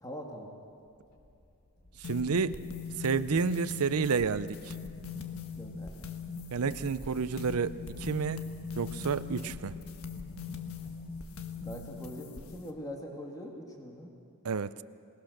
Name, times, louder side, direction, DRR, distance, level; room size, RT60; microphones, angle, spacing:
voice 1, 0.0-0.5 2.5-2.6 5.6-6.0 11.6-14.1, equal, 15° left, 1 dB, 2.2 m, -43 dB
sound 1, 0.7-11.8, left 1 dB, 45° left, 3.7 m, -54 dB
sound 2, 2.0-12.7, left 5 dB, 70° left, 1.4 m, -41 dB
voice 2, 2.0-2.6 3.0-4.8 6.5-8.5 8.8-9.8 14.4-14.8, right 5 dB, 80° right, 15 dB, 0.6 m, -30 dB
27.0 x 19.0 x 6.6 m, 2.6 s
head